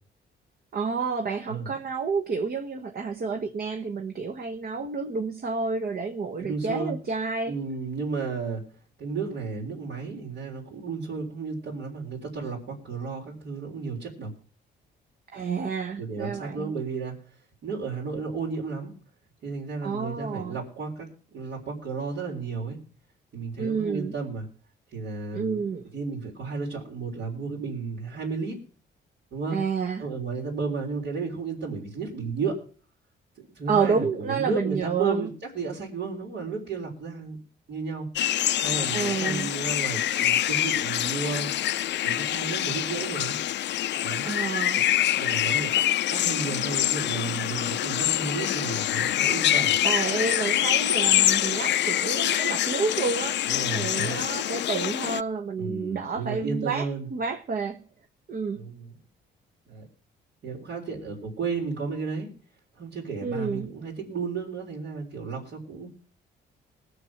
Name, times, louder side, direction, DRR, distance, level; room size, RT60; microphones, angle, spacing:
voice 1, 0.7-7.5 15.3-16.7 19.8-20.6 23.6-24.1 25.3-25.8 29.5-30.0 33.7-35.2 38.9-39.5 44.2-44.9 49.6-53.4 53.7-57.8 58.3-58.6 63.2-63.7, right 5 dB, 50° right, 1.2 m, -29 dB
voice 2, 6.4-6.9 7.5-8.6 9.0-14.3 16.0-17.1 17.6-18.9 19.4-22.8 23.3-24.5 24.9-25.6 25.9-28.6 29.3-29.6 30.0-32.6 33.4-37.4 37.7-38.1 38.6-41.5 42.0-43.4 44.0-44.3 44.7-44.8 45.1-49.8 53.5-54.2 55.6-57.1 58.5-59.0 59.7-59.9 60.4-62.3 62.8-65.9, right 4 dB, 65° right, 3.7 m, -33 dB
sound 1, 38.2-55.2, left 12 dB, 65° left, 0.5 m, -25 dB
19.5 x 6.7 x 5.9 m
cardioid pair, 90°, 20 cm